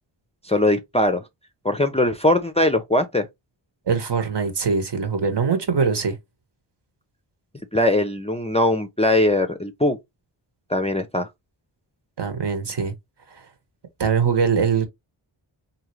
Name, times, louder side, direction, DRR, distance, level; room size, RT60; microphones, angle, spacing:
voice 1, 0.4-1.2 1.6-3.3 7.7-10.0 10.7-11.3, left 1 dB, 15° left, 0.5 m, -20 dB
voice 2, 3.9-6.2 12.2-12.9 13.3-13.4 14.0-14.9, right 6 dB, 55° right, 1.2 m, -22 dB
3.7 x 2.8 x 3.1 m
wide cardioid pair, 65°, 50 cm